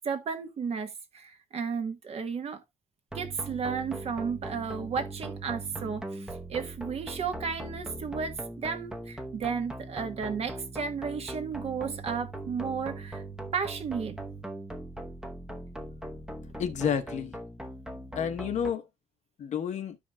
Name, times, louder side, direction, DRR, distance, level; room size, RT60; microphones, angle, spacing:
voice 1, 0.0-2.6 3.1-13.2 13.5-14.2, right 6 dB, 45° right, 1.3 m, -33 dB
sound 1, 3.1-18.7, right 2 dB, 5° right, 0.9 m, -40 dB
voice 2, 16.6-17.4 18.2-18.9 19.4-20.0, left 8 dB, 55° left, 1.0 m, -30 dB
13.5 x 5.0 x 2.3 m
cardioid pair, 120°, 14 cm